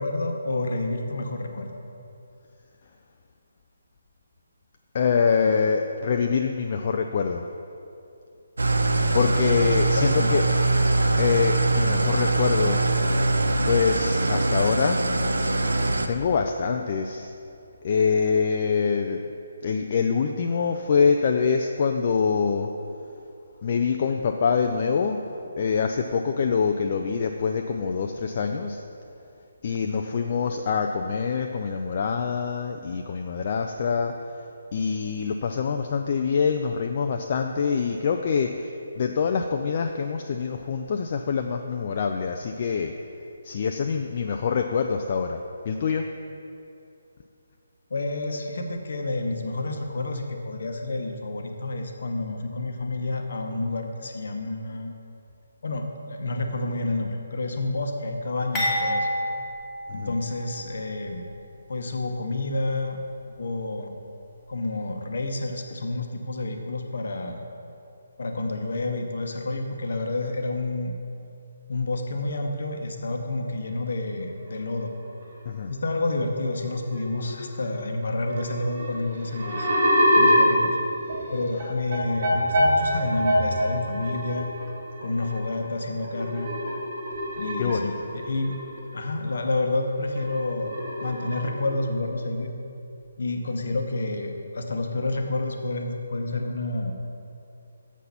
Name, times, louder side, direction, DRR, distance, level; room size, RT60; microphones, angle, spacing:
voice 1, 0.0-1.7 9.2-9.6 9.9-10.4 47.9-54.9 55.6-59.1 59.9-61.2 61.7-63.0 63.2-63.9 64.5-67.4 68.2-70.9 71.7-74.9 75.7-79.7 80.1-80.8 81.3-84.5 85.0-86.5 87.4-88.0 88.2-88.6 88.9-92.5 93.2-96.9, left 2 dB, 55° left, 4 dB, 0.9 m, -29 dB
voice 2, 4.9-7.4 9.1-10.4 11.2-12.8 13.1-13.2 13.7-15.0 16.1-17.3 17.8-19.2 19.6-22.7 23.6-25.2 25.6-28.8 29.6-34.1 34.7-38.7 39.0-42.9 43.4-45.4 45.7-46.1 60.0-60.2 75.5-75.7 87.6-87.9, left 6 dB, 40° left, 4 dB, 0.3 m, -25 dB
Engine starting / Idling, 8.6-16.1, right 2 dB, 70° right, 0.5 m, -23 dB
sound 1, 58.5-60.7 61.1-61.2 62.1-62.2, equal, 10° left, 1.8 m, -29 dB
sound 2, 73.5-73.8 74.5-74.8 75.2-75.4 76.4-76.5 76.6-77.5 77.8-77.9 78.2-89.4 89.6-91.8, equal, 50° right, 1.8 m, -26 dB
7.2 x 5.8 x 5.4 m, 2.7 s
figure-of-eight pair, 145°, 0 cm